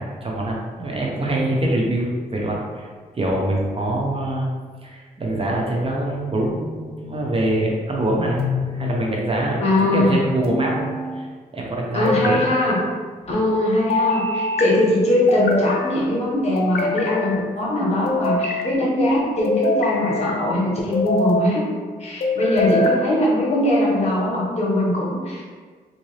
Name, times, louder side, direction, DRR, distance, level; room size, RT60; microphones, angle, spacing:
voice 1, 0.0-2.9 3.1-4.5 4.8-9.6 9.9-10.9 11.1-11.3 11.5-12.5, right 1 dB, 35° right, -2 dB, 0.7 m, -24 dB
sound 1, 8.4-9.1 10.4-11.2 12.0-12.8 13.9-14.7 15.3-15.9 16.6-17.4 18.1-18.7 19.4-20.4 20.9-21.5 22.2-23.0, left 2 dB, 70° left, 0.6 m, -24 dB
voice 2, 9.6-10.2 11.9-12.8 13.3-21.6 22.0-25.4, left 1 dB, 40° left, -5 dB, 1.2 m, -21 dB
3.6 x 2.6 x 3.2 m, 1.5 s
cardioid pair, 85°, 16 cm